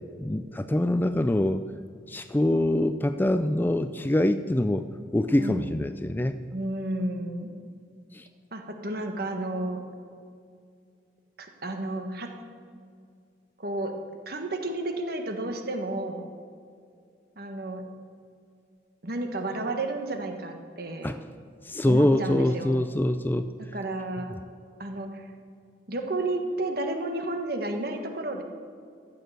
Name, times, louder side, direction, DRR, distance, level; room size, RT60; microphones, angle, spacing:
voice 1, 0.2-1.6 2.1-4.9 5.1-6.4 8.1-8.3 21.0-21.2 21.6-23.5, left 1 dB, 10° left, 10 dB, 0.3 m, -24 dB
voice 2, 5.4-5.7 6.5-7.5 8.5-9.8 11.4-12.3 13.6-13.9 14.2-16.2 17.4-17.8 19.0-21.1 21.9-22.7 23.6-24.3 24.8-25.3 25.9-28.4, right 2 dB, 55° right, 5 dB, 1.5 m, -32 dB
14.0 x 8.8 x 7.9 m, 2.3 s
head